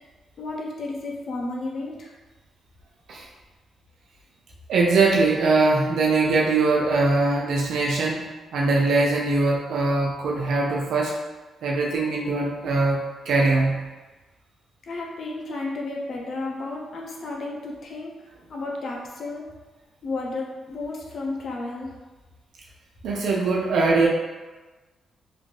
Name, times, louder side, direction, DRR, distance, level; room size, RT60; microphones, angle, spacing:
voice 1, 0.4-2.1 14.8-19.5 20.0-21.9, left 2 dB, 55° left, -2 dB, 0.6 m, -32 dB
voice 2, 4.7-11.1 11.6-13.0 13.3-13.8 23.0-24.1, right 3 dB, 80° right, -2 dB, 0.4 m, -21 dB
2.6 x 2.5 x 3.0 m, 1.2 s
cardioid pair, 75°, 0 cm